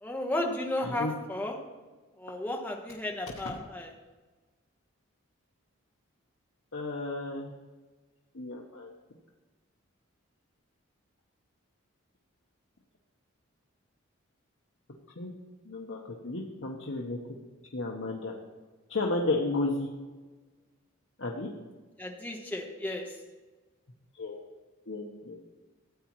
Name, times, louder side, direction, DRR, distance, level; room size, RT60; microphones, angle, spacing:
voice 1, 0.0-1.5 2.2-3.9 22.0-23.1, left 1 dB, 10° left, 0 dB, 1.1 m, -33 dB
voice 2, 0.8-1.1 3.4-3.6 6.7-7.5 8.3-9.0 15.2-15.3 15.6-17.2 17.7-18.3 18.9-19.9 21.2-21.5 24.1-24.4 24.9-25.5, left 2 dB, 65° left, -1 dB, 1.0 m, -33 dB
14.0 x 8.4 x 3.1 m, 1.3 s
head